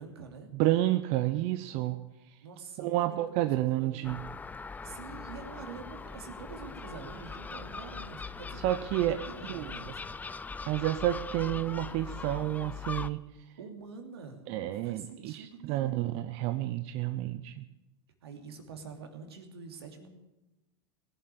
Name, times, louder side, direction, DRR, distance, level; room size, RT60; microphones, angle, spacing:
voice 1, 0.0-0.5 2.4-4.1 4.8-8.6 9.0-10.0 13.6-16.2 18.2-20.1, right 5 dB, 85° right, 5 dB, 2.9 m, -46 dB
voice 2, 0.5-2.0 2.3-2.4 2.8-4.2 8.6-9.7 10.6-13.2 14.5-17.6, right 14 dB, 55° right, 10 dB, 0.8 m, -30 dB
Gull seagull, 4.0-13.1, left 4 dB, 10° left, 0.5 m, -41 dB
19.0 x 7.7 x 9.9 m, 0.99 s
hypercardioid pair, 105°, 13 cm